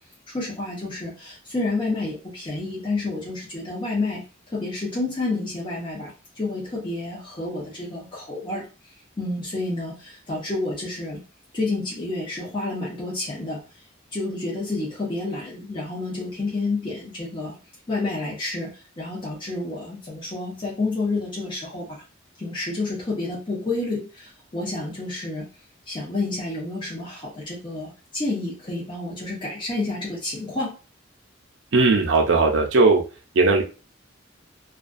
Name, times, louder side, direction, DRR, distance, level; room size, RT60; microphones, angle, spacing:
voice 1, 0.3-4.2 4.5-8.7 9.2-11.2 11.5-13.6 14.1-17.6 17.9-18.7 19.0-22.0 22.4-25.5 25.9-30.8, left 2 dB, 25° left, -6 dB, 0.7 m, -29 dB
voice 2, 31.7-33.0 33.3-33.6, right 3 dB, 70° right, 2 dB, 0.5 m, -17 dB
2.4 x 2.2 x 2.4 m, 0.32 s
head